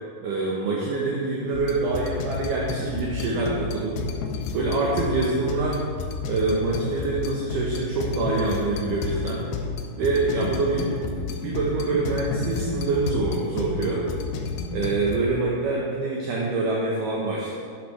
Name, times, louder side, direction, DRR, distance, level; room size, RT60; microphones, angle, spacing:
voice 1, 0.2-4.0 4.5-5.8 6.3-9.5 10.0-10.9 11.4-14.1 14.7-17.5, right 3 dB, 70° right, -4 dB, 2.2 m, -25 dB
sound 1, 1.5-15.2, left 4 dB, 80° left, 2.6 m, -31 dB
11.5 x 10.5 x 3.3 m, 2.1 s
omnidirectional pair, 4.9 m